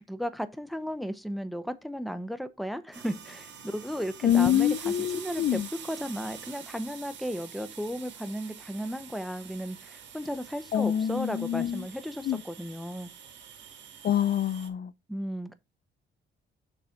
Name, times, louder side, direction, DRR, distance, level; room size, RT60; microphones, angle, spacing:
voice 1, 0.0-5.6 5.9-13.1 15.1-15.5, equal, ahead, 0.9 m, -35 dB
sound 1, 2.9-14.7, right 7 dB, 65° right, 1.7 m, -46 dB
voice 2, 4.2-5.7 10.7-11.8 12.2-12.4 14.0-14.9, left 10 dB, 50° left, 0.5 m, -26 dB
6.7 x 4.0 x 5.8 m
cardioid pair, 90°, 20 cm